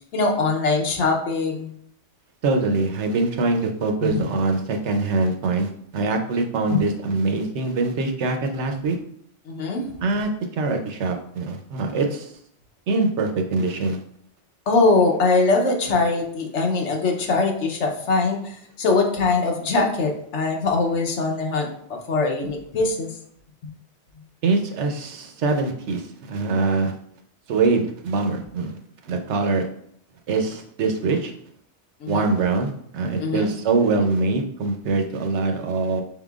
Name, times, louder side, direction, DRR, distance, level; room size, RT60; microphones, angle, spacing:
voice 1, 0.1-1.7 4.0-4.3 6.7-6.8 9.5-9.9 14.7-23.2 23.6-23.7 32.0-32.3 33.2-33.5, left 3 dB, 75° left, 2 dB, 1.1 m, -22 dB
voice 2, 2.4-9.0 10.0-12.3 12.9-14.0 24.4-26.9 27.5-28.7 29.1-29.7 30.3-31.3 32.1-36.0, right 3 dB, 75° right, 4 dB, 1.0 m, -23 dB
5.7 x 3.7 x 2.4 m, 0.66 s
omnidirectional pair, 1.2 m